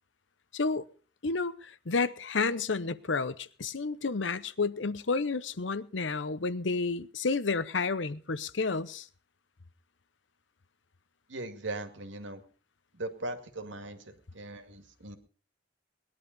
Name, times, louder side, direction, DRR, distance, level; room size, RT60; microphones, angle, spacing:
voice 1, 0.5-0.8 1.2-9.1, left 4 dB, 75° left, 0.8 m, -31 dB
voice 2, 11.3-12.4 12.9-15.2, right 2 dB, 80° right, 2.3 m, -39 dB
20.0 x 11.0 x 5.3 m
head